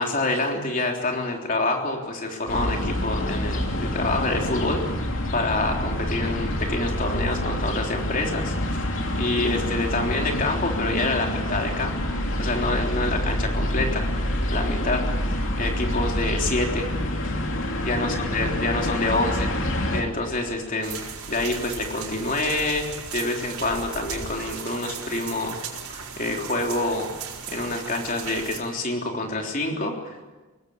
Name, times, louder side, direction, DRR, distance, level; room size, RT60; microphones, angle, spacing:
voice 1, 0.0-4.8 5.3-8.8 9.1-12.0 12.4-14.2 14.5-16.9 17.8-19.5 19.9-21.0 21.3-25.6 25.9-27.1 27.5-30.3, left 2 dB, 35° left, 2 dB, 3.5 m, -27 dB
sound 1, 2.5-20.0, left 1 dB, 60° left, 3.0 m, -27 dB
sound 2, 12.2-24.3, equal, 85° left, 6.1 m, -48 dB
sound 3, 20.8-28.6, right 7 dB, 85° right, 4.4 m, -37 dB
23.0 x 19.0 x 8.6 m, 1.2 s
head